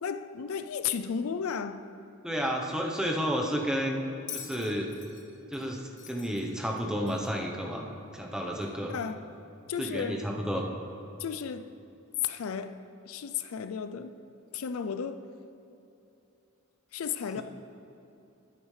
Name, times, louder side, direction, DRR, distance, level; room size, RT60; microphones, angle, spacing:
voice 1, 0.0-1.8 8.9-9.2 9.7-10.2 11.2-11.7 12.2-12.8 13.0-14.1 14.5-15.3 16.9-17.4, left 7 dB, 80° left, 0.4 m, -33 dB
voice 2, 2.2-4.0 4.3-4.9 5.5-7.9 8.1-8.9 9.8-10.7 17.4-17.5, equal, 5° right, 0.8 m, -31 dB
Bell, 4.3-7.5 8.6-8.7, left 8 dB, 35° left, 0.6 m, -45 dB
13.5 x 8.9 x 3.3 m
head